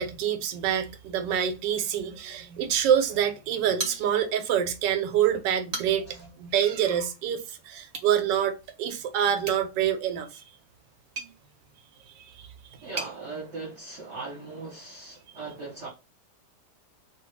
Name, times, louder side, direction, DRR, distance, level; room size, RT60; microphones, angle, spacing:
voice 1, 0.0-10.4 12.2-12.5, right 9 dB, 85° right, 1.2 m, -26 dB
sound 1, 3.8-4.5 4.9-5.0 5.5-6.2 7.8-8.1 9.4-13.2, right 3 dB, 65° right, 0.3 m, -39 dB
voice 2, 12.8-15.9, right 3 dB, 50° right, 1.0 m, -39 dB
3.0 x 2.3 x 3.1 m
omnidirectional pair, 1.9 m